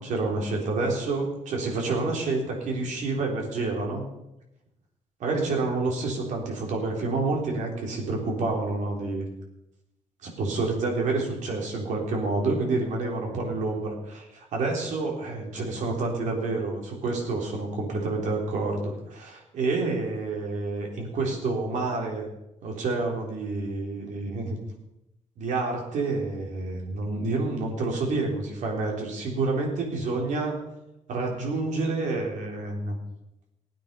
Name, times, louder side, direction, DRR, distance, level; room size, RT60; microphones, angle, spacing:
voice 1, 0.0-4.0 5.2-9.3 10.2-22.2 22.6-24.6 25.4-30.5 31.1-32.9, right 3 dB, 80° right, 0 dB, 3.8 m, -28 dB
17.0 x 8.9 x 5.5 m, 0.90 s
cardioid pair, 105°, 12 cm